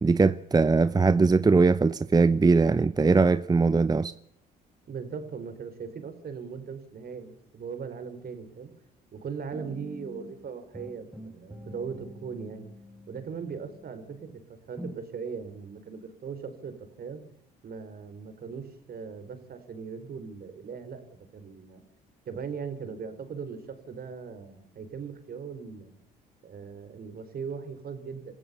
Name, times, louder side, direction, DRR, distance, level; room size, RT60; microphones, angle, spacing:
voice 1, 0.0-4.1, right 4 dB, 20° right, 0.7 m, -21 dB
voice 2, 4.9-8.7 9.1-12.6 13.1-14.3 14.7-17.2 17.6-21.0 21.3-21.8 22.3-26.0 26.4-28.3, right 6 dB, 50° right, 4.5 m, -39 dB
sound 1, 9.5-10.4 10.7-14.3 14.8-15.0, left 1 dB, 5° right, 4.9 m, -46 dB
28.0 x 15.0 x 6.9 m
hypercardioid pair, 55°, 21 cm